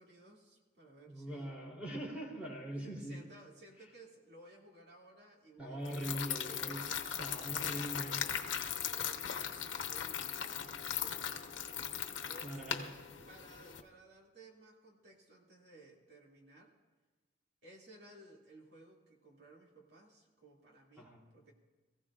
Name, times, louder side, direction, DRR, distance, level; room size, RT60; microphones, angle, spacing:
voice 1, 0.0-1.5 2.7-7.1 8.0-11.9 12.3-13.0 13.3-16.7 17.6-21.5, right 2 dB, 60° right, -1 dB, 2.6 m, -58 dB
voice 2, 1.1-3.2 5.6-6.8 7.2-8.3 12.4-12.8 21.0-21.2, right 1 dB, 5° right, -3 dB, 3.3 m, -42 dB
sound 1, 5.9-13.8, left 8 dB, 85° left, 1.0 m, -39 dB
23.0 x 15.5 x 2.5 m, 1.2 s
head